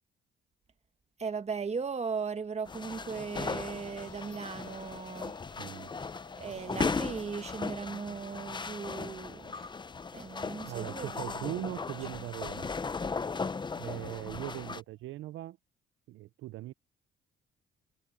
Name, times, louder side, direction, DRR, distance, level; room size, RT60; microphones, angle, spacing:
voice 1, 1.2-5.3 6.4-9.7 10.1-11.4, right 5 dB, 35° right, 1.5 m, -37 dB
sound 1, 2.7-14.8, left 4 dB, 25° left, 0.7 m, -37 dB
sound 2, 2.8-15.1, left 6 dB, 50° left, 3.3 m, -59 dB
voice 2, 5.6-5.9 10.6-12.7 13.7-15.6 16.1-16.7, right 15 dB, 80° right, 0.5 m, -40 dB
cardioid pair, 90°, 20 cm